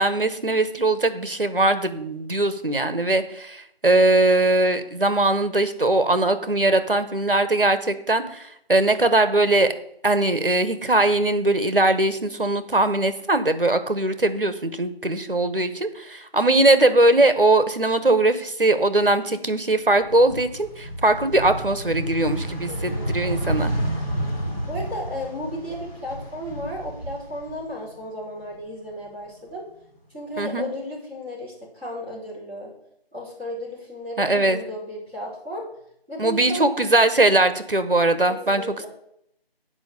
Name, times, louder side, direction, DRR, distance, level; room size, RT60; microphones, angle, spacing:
voice 1, 0.0-9.7 10.0-23.7 30.4-30.6 34.2-34.6 36.2-38.9, right 2 dB, 60° right, 11 dB, 1.0 m, -20 dB
sound 1, 19.9-28.0 28.3-29.5, right 1 dB, 35° left, 3.3 m, -30 dB
voice 2, 22.7-23.5 24.7-29.6 30.1-32.7 33.1-35.7 36.1-36.7 38.3-38.9, left 1 dB, 10° left, -17 dB, 3.8 m, -34 dB
8.8 x 5.2 x 6.8 m, 0.73 s
figure-of-eight pair, 175°, 31 cm